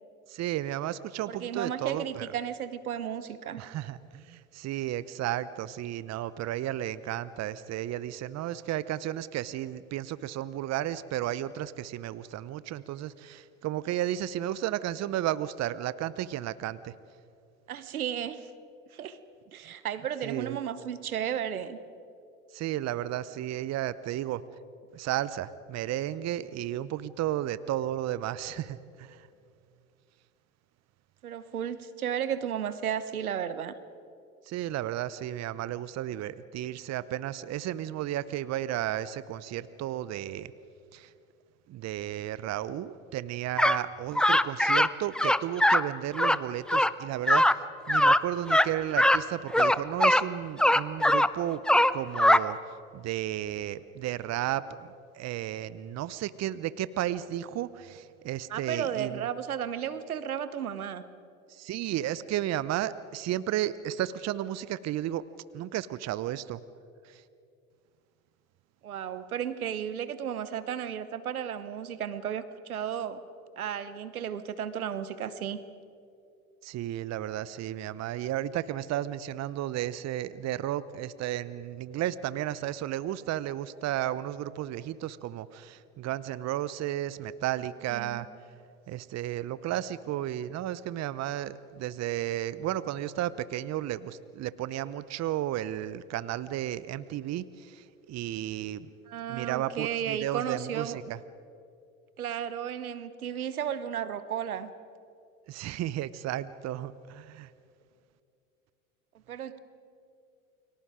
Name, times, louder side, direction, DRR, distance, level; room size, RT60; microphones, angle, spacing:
voice 1, 0.3-2.3 3.6-16.9 20.2-20.6 22.5-24.4 24.9-29.3 34.5-40.5 40.9-41.1 41.7-51.6 51.9-52.6 52.9-54.9 55.1-59.3 61.5-65.3 65.5-66.6 67.0-67.2 76.6-88.3 88.9-98.9 99.3-101.2 105.5-107.5, right 12 dB, 40° right, 17 dB, 0.8 m, -33 dB
voice 2, 1.3-3.6 17.7-18.5 18.9-19.2 19.5-21.8 31.2-33.8 58.5-61.0 68.8-73.2 73.6-75.6 87.9-88.2 99.1-101.0 102.2-104.7 109.3-109.6, right 9 dB, 85° right, 14 dB, 1.2 m, -34 dB
sound 1, 43.6-43.8 44.2-44.9 45.2-45.8 46.1-46.4 46.7-46.9 47.3-47.5 47.9-48.2 48.5-48.7 49.0-49.2 49.5-50.2 50.6-51.3 51.7-52.4, left 1 dB, ahead, 0.5 m, -21 dB
29.5 x 23.5 x 5.1 m, 2.5 s
hypercardioid pair, 80°, 42 cm